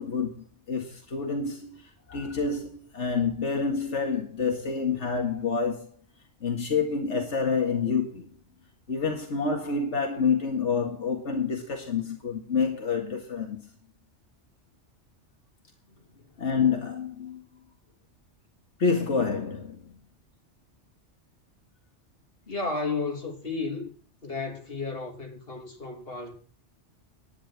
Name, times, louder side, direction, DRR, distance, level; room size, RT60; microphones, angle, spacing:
voice 1, 0.0-5.9 6.4-8.3 8.9-13.7 16.4-17.4 18.8-20.0, left 5 dB, 85° left, 2.2 m, -28 dB
voice 2, 22.5-23.9 24.2-26.3, left 3 dB, 55° left, 3.3 m, -33 dB
11.0 x 10.0 x 6.0 m
omnidirectional pair, 1.2 m